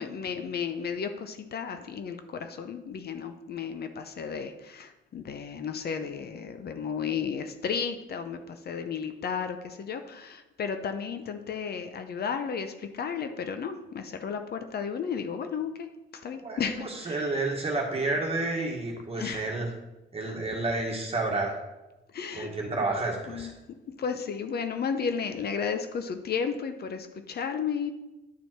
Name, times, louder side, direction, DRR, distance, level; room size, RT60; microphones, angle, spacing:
voice 1, 0.0-17.4 19.1-19.5 22.1-22.8 23.3-23.5 23.9-27.9, left 6 dB, 55° left, 8 dB, 0.7 m, -33 dB
voice 2, 16.4-19.7 20.1-21.5 22.3-23.5, right 2 dB, 30° right, -1 dB, 1.5 m, -30 dB
10.5 x 4.2 x 4.5 m, 1.0 s
cardioid pair, 90°, 20 cm